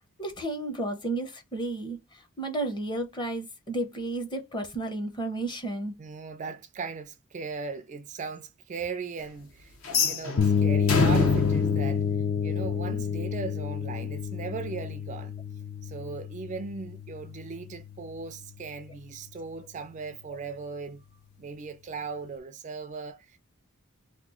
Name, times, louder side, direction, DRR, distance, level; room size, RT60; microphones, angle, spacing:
voice 1, 0.2-6.0, right 2 dB, 20° left, 0.7 m, -32 dB
voice 2, 6.0-12.1 12.4-15.3 15.8-21.0 21.4-23.4, right 5 dB, 35° right, 0.3 m, -38 dB
sound 1, 9.8-12.9, left 3 dB, 70° left, 0.9 m, -27 dB
sound 2, 10.4-18.1, left 7 dB, 45° left, 0.4 m, -29 dB
2.9 x 2.2 x 3.7 m
head